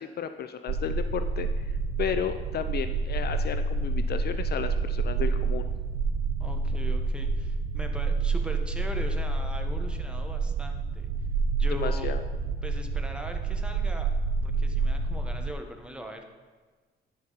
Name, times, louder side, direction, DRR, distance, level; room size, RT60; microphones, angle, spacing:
voice 1, 0.0-1.5 2.0-5.7 11.7-12.2, left 8 dB, 55° left, 10 dB, 0.4 m, -33 dB
sound 1, 0.7-15.5, right 4 dB, 55° right, 0.4 m, -28 dB
voice 2, 6.4-11.1 11.6-12.2 12.6-14.1 14.4-16.2, equal, 5° right, 4 dB, 1.0 m, -40 dB
11.0 x 5.6 x 3.9 m, 1.4 s
cardioid pair, 90°, 20 cm